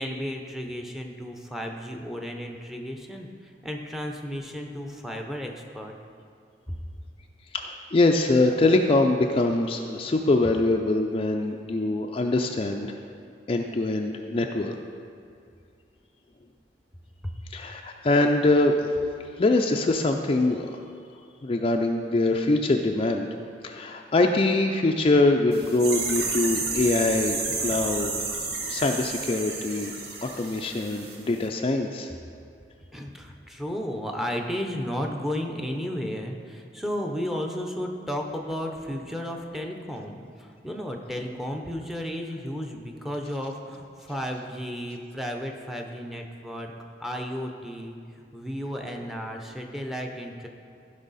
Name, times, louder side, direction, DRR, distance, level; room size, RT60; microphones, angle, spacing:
voice 1, 0.0-5.9 6.7-6.8 17.2-17.3 32.9-46.7 47.0-50.5, equal, ahead, 2 dB, 0.7 m, -33 dB
voice 2, 7.5-13.0 13.5-14.7 17.5-18.9 19.4-20.8 21.4-23.3 23.6-28.1 28.7-29.9 30.2-32.1, left 2 dB, 30° left, 3 dB, 0.4 m, -23 dB
sound 1, 25.5-31.2 31.4-31.5, right 3 dB, 60° right, 1.2 m, -31 dB
15.0 x 5.5 x 4.1 m, 2.4 s
head